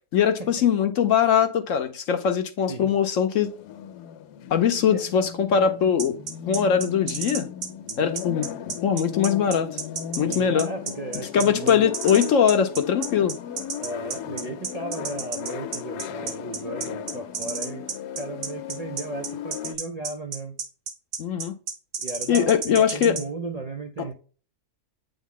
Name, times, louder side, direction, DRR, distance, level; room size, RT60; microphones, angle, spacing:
voice 1, 0.1-3.5 4.5-6.2 6.5-7.5 8.0-9.8 10.2-10.7 11.3-13.4 21.2-21.5 22.3-23.2, left 8 dB, 60° left, 0.9 m, -21 dB
sound 1, 3.4-19.8, left 10 dB, 85° left, 1.1 m, -37 dB
sound 2, 6.0-23.2, right 5 dB, 75° right, 1.6 m, -32 dB
voice 2, 10.2-11.9 13.8-17.8 18.2-20.6 22.0-24.1, right 3 dB, 60° right, 0.4 m, -35 dB
8.2 x 3.6 x 3.7 m
omnidirectional pair, 1.7 m